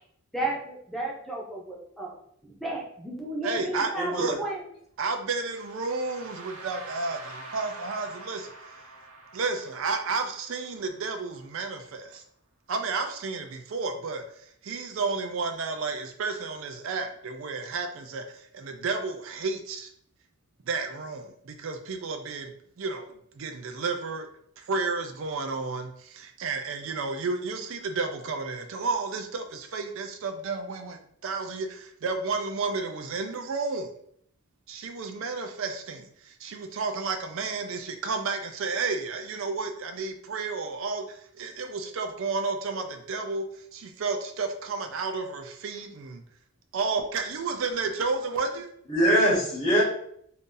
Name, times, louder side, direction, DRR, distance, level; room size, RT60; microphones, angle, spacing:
voice 1, 0.3-2.1 2.6-4.1 4.4-4.6, right 2 dB, ahead, -3 dB, 0.6 m, -33 dB
voice 2, 3.4-4.4 5.0-8.5 9.3-12.2 12.7-19.9 20.7-24.3 24.6-33.9 34.7-43.5 43.7-46.2 46.7-48.7, right 4 dB, 65° right, 6 dB, 0.4 m, -32 dB
voice 3, 4.0-4.4 48.9-49.8, equal, 30° left, -5 dB, 0.8 m, -22 dB
sound 1, 5.3-11.3, right 2 dB, 80° right, 0.8 m, -45 dB
2.6 x 2.6 x 3.7 m, 0.67 s
head